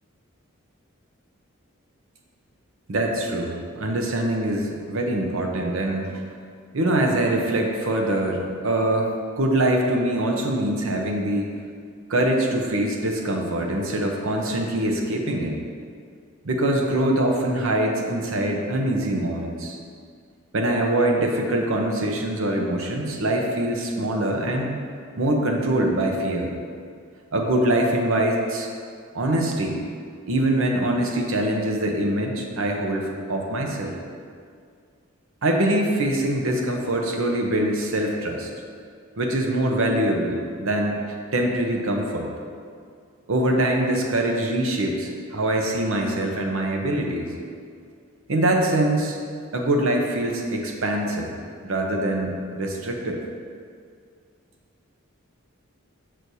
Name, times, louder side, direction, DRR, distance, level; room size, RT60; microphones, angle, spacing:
voice 1, 2.9-6.2 6.7-11.5 12.1-15.6 16.4-19.8 20.5-24.8 25.2-26.5 27.3-28.7 29.1-29.8 30.3-33.9 35.4-38.5 39.2-42.3 43.3-47.3 48.3-49.2 49.5-51.4 51.6-53.2, right 1 dB, 70° right, 1 dB, 0.8 m, -23 dB
6.3 x 5.9 x 2.7 m, 2.2 s
head